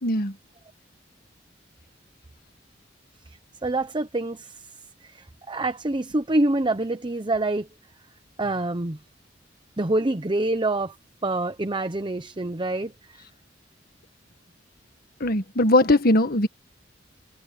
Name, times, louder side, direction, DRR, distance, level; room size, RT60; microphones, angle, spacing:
voice 1, 0.0-0.3 15.2-16.5, left 1 dB, 55° left, 1.8 m, -20 dB
voice 2, 3.6-4.7 5.0-7.7 8.4-9.0 9.8-10.9 11.2-12.9, right 2 dB, 25° right, 0.8 m, -26 dB
head